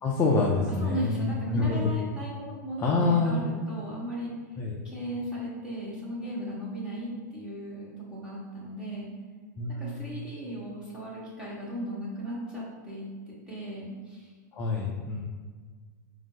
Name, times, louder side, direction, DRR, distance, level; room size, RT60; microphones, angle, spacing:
voice 1, 0.0-1.9 2.8-3.4 4.6-4.8 9.6-10.1 14.5-15.2, left 3 dB, 15° left, -3 dB, 0.4 m, -26 dB
voice 2, 0.8-4.3 4.8-9.1 9.8-13.1 13.5-14.3, equal, 10° right, -6 dB, 1.1 m, -36 dB
4.9 x 2.6 x 3.8 m, 1.5 s
supercardioid pair, 165°, 10 cm